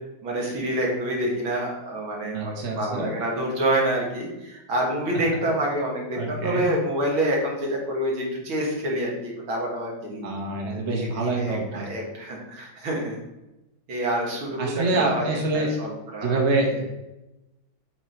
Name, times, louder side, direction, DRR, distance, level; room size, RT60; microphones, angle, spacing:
voice 1, 0.2-10.2 10.7-13.2 13.9-16.4, right 1 dB, 85° right, -2 dB, 2.5 m, -27 dB
voice 2, 2.3-3.1 6.1-6.7 10.2-11.9 14.6-15.7 16.2-16.8, right 2 dB, 45° right, 0 dB, 1.0 m, -26 dB
7.5 x 3.9 x 4.4 m, 0.96 s
omnidirectional pair, 2.2 m